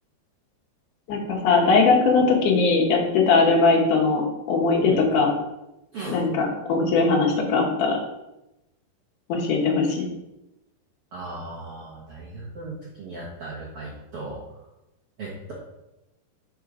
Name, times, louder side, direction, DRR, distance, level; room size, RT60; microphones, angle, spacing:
voice 1, 1.1-5.3 6.0-8.0 9.3-10.0, left 4 dB, 65° left, -1 dB, 2.3 m, -20 dB
voice 2, 11.1-14.4 15.2-15.5, right 2 dB, 90° right, -5 dB, 1.2 m, -36 dB
5.4 x 5.0 x 4.9 m, 0.93 s
omnidirectional pair, 4.6 m